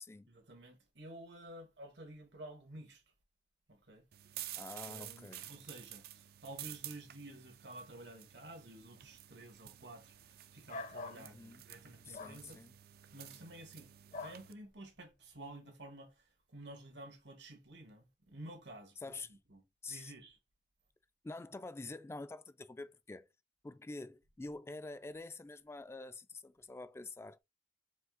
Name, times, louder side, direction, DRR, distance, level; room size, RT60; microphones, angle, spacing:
voice 1, 0.3-3.0 3.7-4.0 4.9-12.5 13.1-19.0 19.3-20.4, right 1 dB, 80° right, 1.6 m, -52 dB
sound 1, 4.1-14.5, right 13 dB, 60° right, 0.4 m, -51 dB
voice 2, 4.6-5.5 11.1-11.6 12.1-12.7 19.0-19.4 19.8-20.1 21.2-23.3 23.6-27.4, left 3 dB, 15° left, 0.3 m, -47 dB
sound 2, 10.7-11.2 12.1-12.4 14.1-14.4, left 3 dB, 45° left, 0.7 m, -44 dB
5.0 x 2.8 x 3.7 m
head